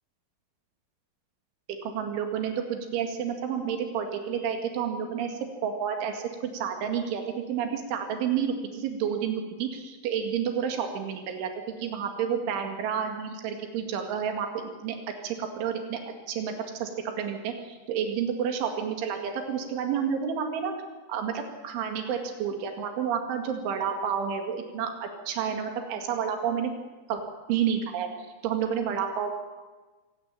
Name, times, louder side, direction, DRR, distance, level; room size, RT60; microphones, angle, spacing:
voice 1, 1.8-7.2 7.5-15.0 15.2-16.0 16.3-16.9 17.2-20.7 21.1-26.7 27.1-27.2 27.5-28.1 28.4-29.3, right 7 dB, 85° right, 4 dB, 4.6 m, -30 dB
26.5 x 17.0 x 9.0 m, 1.3 s
omnidirectional pair, 5.4 m